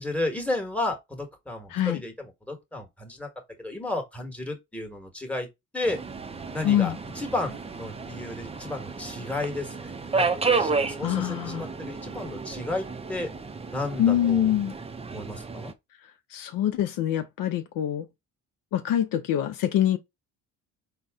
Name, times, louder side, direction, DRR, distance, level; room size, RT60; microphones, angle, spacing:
voice 1, 0.0-3.3 3.6-5.5 5.7-6.0 6.5-13.3 13.7-14.5 15.1-15.7, left 2 dB, 5° left, 1.3 m, -33 dB
voice 2, 1.7-2.0 6.6-7.0 11.0-11.7 14.0-14.7 16.3-18.1 18.7-20.0, left 11 dB, 70° left, 0.6 m, -24 dB
Subway metro underground, 5.8-15.7, right 4 dB, 15° right, 0.5 m, -32 dB
4.0 x 2.1 x 3.5 m
supercardioid pair, 75°, 35 cm